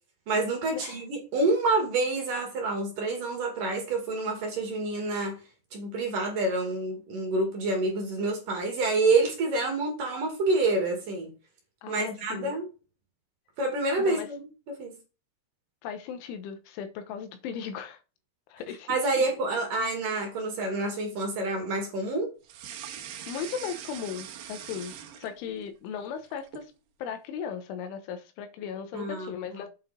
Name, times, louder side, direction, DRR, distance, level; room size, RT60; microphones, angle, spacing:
voice 1, 0.3-5.4 5.7-11.3 11.9-12.7 13.6-14.4 14.7-15.0 18.9-22.3 28.9-29.3, right 2 dB, 50° right, 3.3 m, -28 dB
voice 2, 11.8-12.5 14.0-14.3 15.8-18.0 18.5-19.2 23.3-26.7 27.0-29.7, left 7 dB, 80° left, 3.4 m, -37 dB
sound 1, 22.4-25.7 26.0-26.7, right 9 dB, 70° right, 2.5 m, -42 dB
8.8 x 5.4 x 5.0 m
omnidirectional pair, 5.6 m